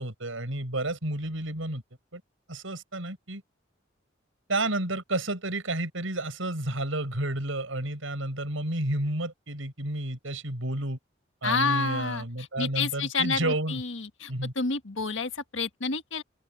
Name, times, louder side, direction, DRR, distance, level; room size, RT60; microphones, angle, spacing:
voice 1, 0.0-1.8 2.1-2.2 2.5-3.4 4.5-11.0 11.4-13.8 14.3-14.5, right 1 dB, 90° right, 5.7 m, -31 dB
voice 2, 11.4-16.2, left 4 dB, 70° left, 1.6 m, -29 dB
open air
head